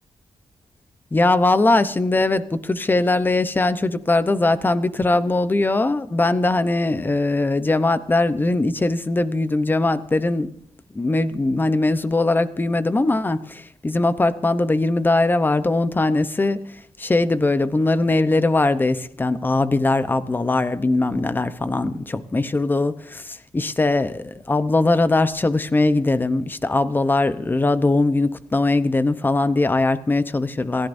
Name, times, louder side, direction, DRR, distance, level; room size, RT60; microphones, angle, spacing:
voice 1, 1.1-10.5 10.9-16.6 17.0-30.9, left 2 dB, 20° left, 12 dB, 0.8 m, -20 dB
28.0 x 15.0 x 2.7 m, 0.72 s
wide cardioid pair, 165°, 11 cm